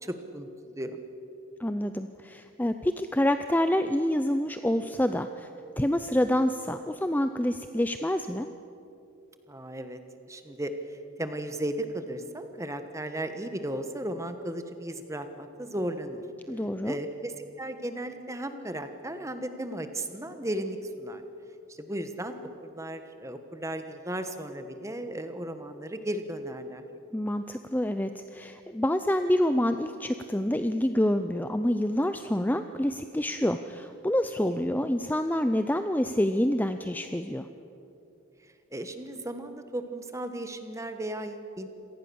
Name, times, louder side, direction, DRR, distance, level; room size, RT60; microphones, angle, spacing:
voice 1, 0.0-1.0 9.5-10.0 10.3-10.7 11.2-16.2 16.8-21.2 21.7-26.8 38.7-41.7, right 1 dB, 15° right, 8 dB, 1.3 m, -35 dB
voice 2, 1.6-5.5 5.8-8.5 16.5-17.0 27.1-37.5, left 1 dB, 10° left, 9 dB, 0.5 m, -27 dB
26.5 x 18.5 x 7.0 m, 2.9 s
head